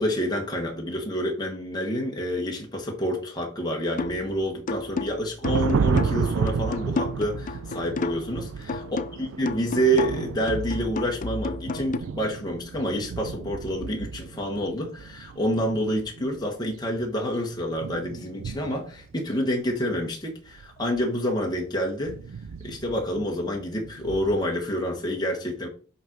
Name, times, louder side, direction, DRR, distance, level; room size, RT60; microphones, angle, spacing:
voice 1, 0.0-22.1 22.6-25.7, equal, 20° left, 0 dB, 1.2 m, -28 dB
sound 1, 4.0-4.3 4.7-8.4 8.7-12.0, left 3 dB, 40° left, 0.4 m, -32 dB
sound 2, 5.4-19.1 19.5-19.9 20.5-21.2 21.8-24.4, right 6 dB, 85° right, 0.4 m, -32 dB
5.5 x 3.7 x 5.9 m, 0.39 s
head